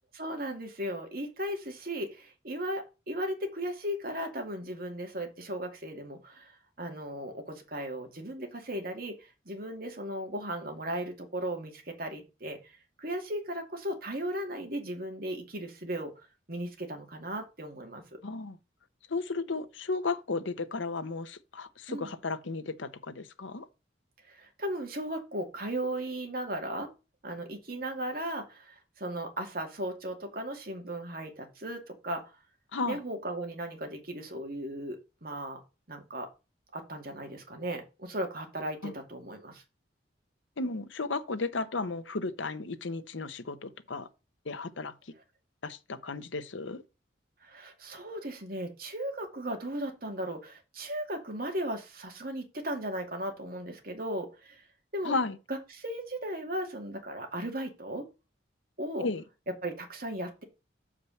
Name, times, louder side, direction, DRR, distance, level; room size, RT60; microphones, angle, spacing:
voice 1, 0.1-18.2 21.9-22.1 24.2-26.9 27.2-32.2 32.8-35.6 35.9-36.3 36.7-39.6 47.4-54.6 54.9-55.2 55.5-58.1 58.8-59.1 59.6-60.4, right 1 dB, 50° right, 2.3 m, -36 dB
voice 2, 18.2-18.6 19.1-23.7 32.7-33.0 38.8-38.9 40.6-44.1 44.4-44.9 45.6-46.8 55.0-55.4 59.0-59.2, left 3 dB, 85° left, 0.9 m, -34 dB
7.0 x 4.9 x 6.9 m
head